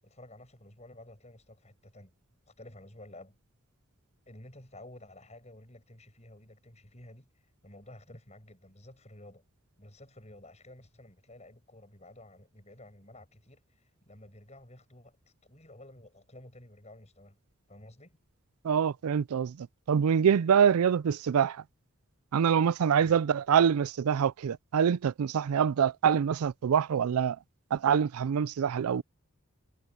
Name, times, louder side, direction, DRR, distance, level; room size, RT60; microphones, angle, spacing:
voice 1, 0.0-2.1 2.6-3.4 4.3-7.3 7.6-9.4 9.8-15.2 15.4-17.4 17.7-18.2 23.0-23.2, left 1 dB, 30° left, 7.1 m, -52 dB
voice 2, 18.6-21.6 22.3-27.4 27.7-29.0, right 7 dB, 90° right, 0.4 m, -25 dB
head